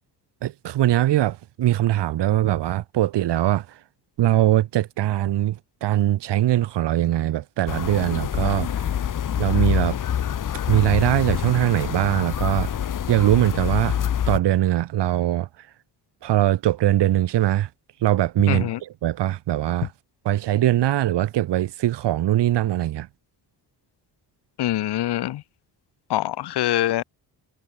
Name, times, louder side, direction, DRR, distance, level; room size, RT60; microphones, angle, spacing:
voice 1, 0.4-3.8 4.2-8.7 9.4-10.0 10.7-12.7 13.1-14.0 14.3-15.5 16.2-17.7 18.0-19.9 20.2-23.1, right 13 dB, 85° right, 7.6 m, -21 dB
sound 1, 7.7-14.4, left 9 dB, 50° left, 3.5 m, -26 dB
voice 2, 18.5-18.8 24.6-25.4 26.1-27.0, left 14 dB, 75° left, 1.8 m, -24 dB
cardioid pair, 160°, 40 cm